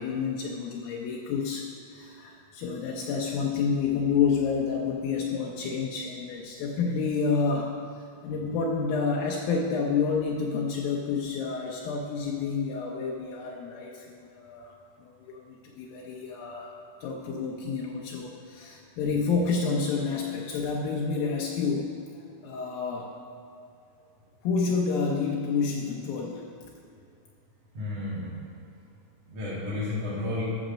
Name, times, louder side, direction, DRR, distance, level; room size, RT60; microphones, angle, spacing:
voice 1, 0.0-16.7 17.0-22.0 22.4-23.1 24.4-26.5, left 5 dB, 85° left, -1 dB, 2.0 m, -29 dB
voice 2, 27.7-28.3 29.3-30.4, left 2 dB, 45° right, -10 dB, 2.4 m, -32 dB
14.5 x 5.2 x 6.2 m, 2.5 s
omnidirectional pair, 5.2 m